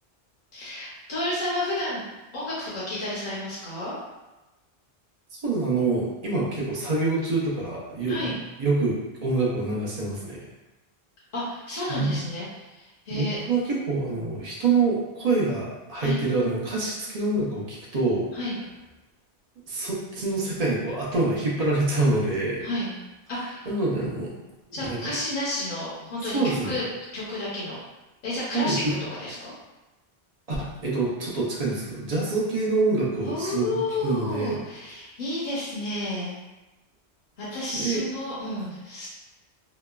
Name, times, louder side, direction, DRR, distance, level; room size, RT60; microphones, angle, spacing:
voice 1, 0.5-2.0 2.3-3.9 8.1-8.3 11.3-12.5 12.7-13.4 16.0-16.2 18.3-18.6 22.6-23.0 23.3-23.7 24.7-26.8 27.1-27.8 28.2-28.8 29.1-29.5 33.2-36.4 37.4-39.1, left 1 dB, 55° left, -8 dB, 0.8 m, -31 dB
voice 2, 5.4-8.3 8.6-10.4 11.9-12.2 13.1-18.2 19.7-22.6 23.7-24.3 24.9-25.1 26.3-26.8 28.5-28.9 30.5-33.7 34.0-34.6 37.7-38.0, right 3 dB, 45° right, -4 dB, 0.6 m, -26 dB
2.9 x 2.1 x 2.2 m, 1.1 s
omnidirectional pair, 1.1 m